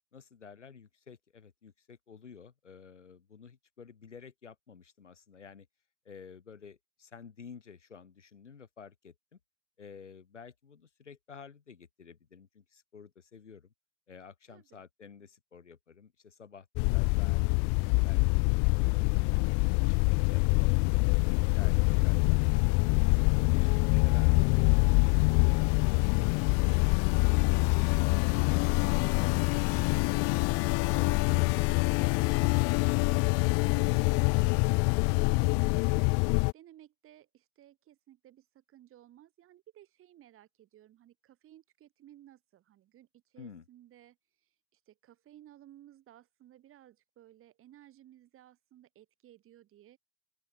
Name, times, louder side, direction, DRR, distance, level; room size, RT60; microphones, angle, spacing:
voice 1, 0.1-5.7 6.0-9.4 9.8-13.7 14.1-18.4 18.8-22.6 22.9-26.2 43.4-43.6, left 6 dB, 85° left, 3.3 m, -51 dB
voice 2, 14.5-14.8 35.3-50.0, right 12 dB, 35° right, 4.0 m, -57 dB
sound 1, 16.8-36.5, left 37 dB, 40° left, 0.5 m, -25 dB
open air
figure-of-eight pair, 80°, 35 cm